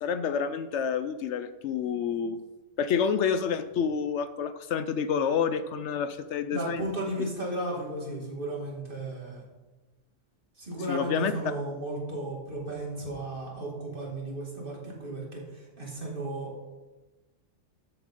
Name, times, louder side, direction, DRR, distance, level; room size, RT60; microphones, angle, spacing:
voice 1, 0.0-2.4 2.8-6.9 10.9-11.3, left 7 dB, 70° left, 12 dB, 0.8 m, -28 dB
voice 2, 6.5-9.4 10.6-16.7, right 1 dB, 45° right, -2 dB, 2.5 m, -35 dB
14.0 x 7.3 x 3.7 m, 1.2 s
omnidirectional pair, 1.3 m